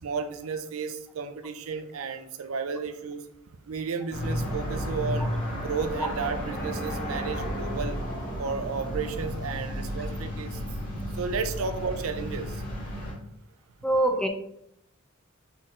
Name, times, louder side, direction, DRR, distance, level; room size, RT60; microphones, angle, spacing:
voice 1, 0.0-3.2 3.7-5.4 5.6-8.0 8.4-10.6 10.9-12.6, right 5 dB, 70° right, 9 dB, 0.5 m, -33 dB
sound 1, 4.1-13.1, equal, 40° left, 1.7 m, -33 dB
voice 2, 13.8-14.3, right 1 dB, 5° left, 5 dB, 0.4 m, -24 dB
4.3 x 3.8 x 3.1 m, 0.75 s
head